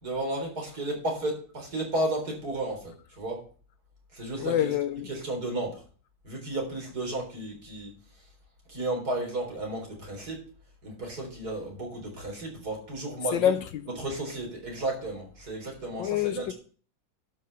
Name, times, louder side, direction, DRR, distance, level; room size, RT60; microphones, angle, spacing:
voice 1, 0.0-3.4 4.1-4.7 5.1-5.8 6.2-8.3 8.7-10.4 10.8-13.5 13.9-16.5, right 1 dB, 45° right, 4.4 m, -33 dB
voice 2, 4.4-5.1 13.3-13.9 16.0-16.5, left 10 dB, 70° left, 1.3 m, -26 dB
11.5 x 5.7 x 6.6 m
omnidirectional pair, 2.2 m